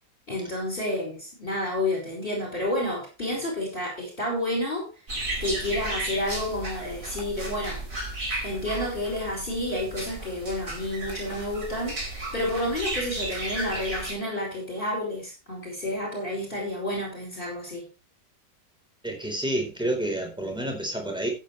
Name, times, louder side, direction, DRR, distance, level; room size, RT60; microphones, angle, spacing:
voice 1, 0.3-4.9 5.4-7.8 8.4-17.8, left 1 dB, 30° left, 6.0 m, -30 dB
sound 1, 5.1-14.1, right 2 dB, 45° right, 4.9 m, -34 dB
voice 2, 19.0-21.3, right 1 dB, ahead, 4.2 m, -29 dB
14.5 x 9.6 x 3.3 m
omnidirectional pair, 1.9 m